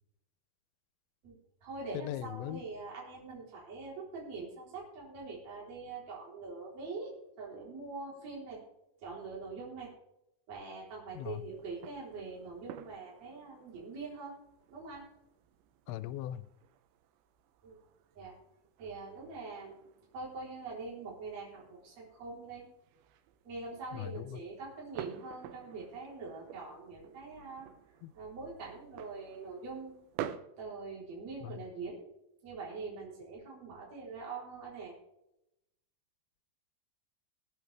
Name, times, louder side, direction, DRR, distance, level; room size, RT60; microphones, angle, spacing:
voice 1, 1.2-7.1 7.4-8.6 9.0-9.9 10.5-14.3 14.7-15.0 17.6-17.8 18.1-18.3 18.8-19.8 20.1-22.6 23.4-27.7 28.1-29.9 30.6-32.1 32.4-34.9, right 4 dB, 40° right, -4 dB, 4.7 m, -43 dB
voice 2, 1.9-2.6 11.2-11.4 15.9-16.4 23.9-24.4 28.0-28.1 31.4-31.6, left 13 dB, 90° left, 15 dB, 2.9 m, -39 dB
sound 1, 11.1-30.4, right 10 dB, 80° right, 3.0 m, -51 dB
19.5 x 8.8 x 3.4 m, 0.84 s
omnidirectional pair, 5.1 m